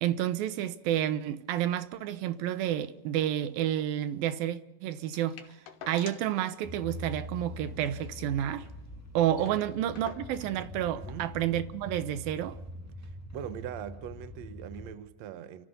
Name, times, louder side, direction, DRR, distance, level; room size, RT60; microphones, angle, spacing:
voice 1, 0.0-5.6 5.9-8.7 9.1-12.6, right 11 dB, 75° right, 2.4 m, -30 dB
sound 1, 5.1-6.4 6.7-6.8 7.1-7.3 7.7-8.8 9.1-9.2 9.3-10.6 11.5-11.6, left 8 dB, 80° left, 3.5 m, -49 dB
sound 2, 6.6-14.9, left 1 dB, 15° right, 0.5 m, -44 dB
voice 2, 11.0-11.3 13.0-15.7, right 10 dB, 90° right, 1.5 m, -41 dB
29.5 x 14.0 x 6.9 m
omnidirectional pair, 4.8 m